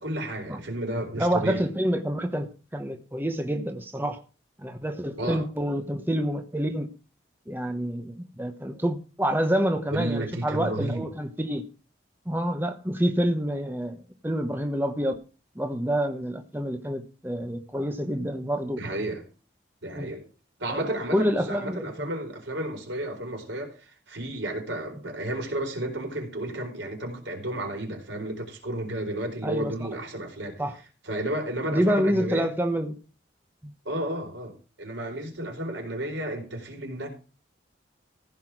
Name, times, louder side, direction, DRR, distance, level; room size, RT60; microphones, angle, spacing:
voice 1, 0.0-1.6 5.2-5.5 9.9-11.0 18.8-19.2 19.8-20.2 20.6-30.6 31.0-32.5 33.8-37.1, right 1 dB, 90° right, 4.5 m, -32 dB
voice 2, 1.1-4.2 4.6-6.9 7.5-11.7 12.3-15.2 15.6-18.8 19.9-20.1 20.7-20.8 21.1-22.1 29.4-29.7 30.6-30.8 31.7-32.9, equal, 10° right, 1.0 m, -27 dB
15.5 x 5.9 x 6.0 m
head